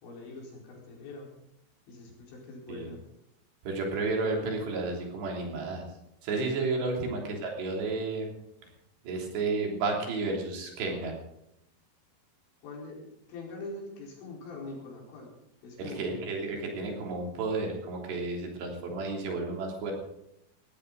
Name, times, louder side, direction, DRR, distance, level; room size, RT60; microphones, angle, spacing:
voice 1, 0.0-1.3 1.9-3.0 12.6-15.3 15.6-16.2, left 2 dB, 85° left, -2 dB, 6.9 m, -43 dB
voice 2, 3.6-5.8 6.2-8.3 9.0-11.2 15.8-19.9, right 3 dB, 70° right, 0 dB, 5.3 m, -32 dB
19.0 x 15.5 x 4.0 m, 0.81 s
omnidirectional pair, 5.1 m